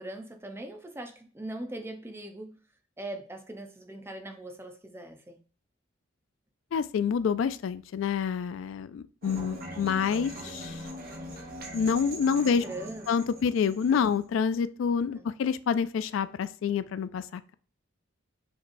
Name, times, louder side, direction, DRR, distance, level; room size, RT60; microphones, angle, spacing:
voice 1, 0.0-2.6 3.0-5.4 9.4-9.5 12.4-13.1 13.9-14.0 15.2-15.3, right 1 dB, 10° right, 0.5 m, -41 dB
voice 2, 6.7-10.8 11.7-12.6 13.1-17.5, left 6 dB, 70° left, 0.3 m, -27 dB
sound 1, 9.2-14.3, equal, 45° right, 1.2 m, -41 dB
6.3 x 3.2 x 2.6 m
head